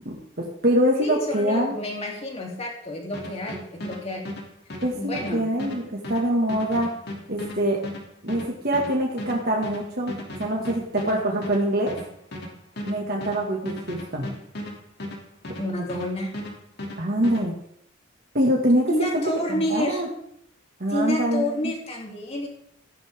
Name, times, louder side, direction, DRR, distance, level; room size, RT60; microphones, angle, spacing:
voice 1, 0.1-1.7 4.8-6.9 7.3-7.8 8.2-11.9 12.9-14.3 17.0-17.5 18.3-19.2 19.5-20.1 20.8-21.5, right 1 dB, 50° right, -2 dB, 2.1 m, -24 dB
voice 2, 1.0-4.3 5.0-5.5 15.6-16.4 18.9-20.0 20.9-22.5, left 1 dB, 30° left, 0 dB, 3.4 m, -29 dB
sound 1, 3.1-16.1 16.3-17.4, left 1 dB, 55° left, 2.9 m, -36 dB
15.5 x 11.0 x 3.8 m, 0.71 s
head